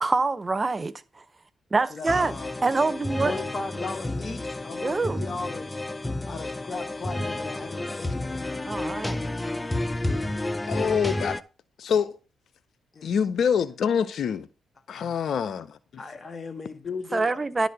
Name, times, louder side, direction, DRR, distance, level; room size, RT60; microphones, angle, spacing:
voice 1, 0.0-1.2 1.7-3.3 4.8-5.2 8.7-9.3 17.1-17.7, right 3 dB, 30° right, 0.6 m, -26 dB
voice 2, 1.9-2.5 3.2-5.8 6.3-8.4 12.9-13.1 14.9-15.1 16.0-17.5, left 4 dB, 40° left, 1.6 m, -37 dB
sound 1, 2.1-11.4, left 1 dB, 20° left, 0.6 m, -31 dB
voice 3, 10.7-11.4 11.8-12.2 13.0-14.5 14.9-16.0, left 7 dB, 65° left, 0.6 m, -26 dB
11.0 x 4.1 x 6.6 m
supercardioid pair, 55°, 0 cm